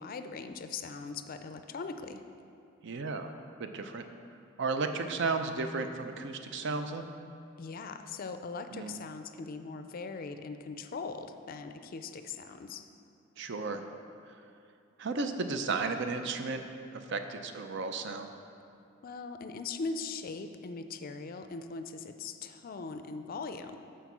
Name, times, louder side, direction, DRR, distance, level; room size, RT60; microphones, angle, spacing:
voice 1, 0.0-2.2 7.6-12.9 19.0-23.8, left 4 dB, 45° left, 9 dB, 0.4 m, -40 dB
voice 2, 2.8-3.3 3.6-4.0 4.6-7.1 8.7-8.9 13.4-13.8 15.0-16.6 16.9-18.3, right 4 dB, 65° right, 7 dB, 0.5 m, -34 dB
8.0 x 4.6 x 6.0 m, 2.5 s
head